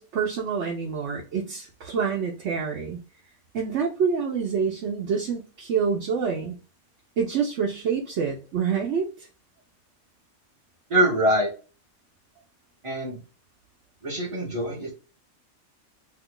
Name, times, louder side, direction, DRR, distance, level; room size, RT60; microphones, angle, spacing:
voice 1, 0.0-3.0 3.5-6.6 7.2-9.3, right 6 dB, 60° right, 0 dB, 0.9 m, -27 dB
voice 2, 10.9-11.5 12.8-13.2 14.0-14.9, right 1 dB, 25° right, -6 dB, 0.8 m, -23 dB
2.9 x 2.3 x 3.6 m, 0.33 s
omnidirectional pair, 1.5 m